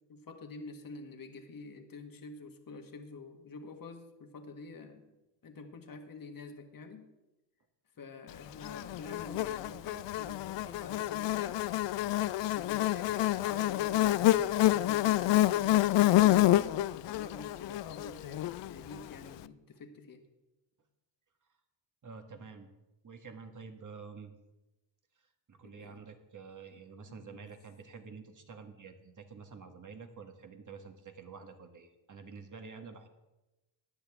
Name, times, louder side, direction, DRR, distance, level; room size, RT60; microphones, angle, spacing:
voice 1, 0.1-5.1 5.4-7.1 8.0-11.6 12.4-20.2 25.6-26.0 27.1-27.4, left 4 dB, 45° left, 5 dB, 1.6 m, -47 dB
Buzz, 8.6-19.1, left 14 dB, 65° left, 0.5 m, -28 dB
voice 2, 22.0-22.7 23.0-24.3 25.5-33.1, right 5 dB, 40° right, 6 dB, 1.7 m, -49 dB
15.0 x 9.9 x 3.6 m, 1.0 s
cardioid pair, 75°, 48 cm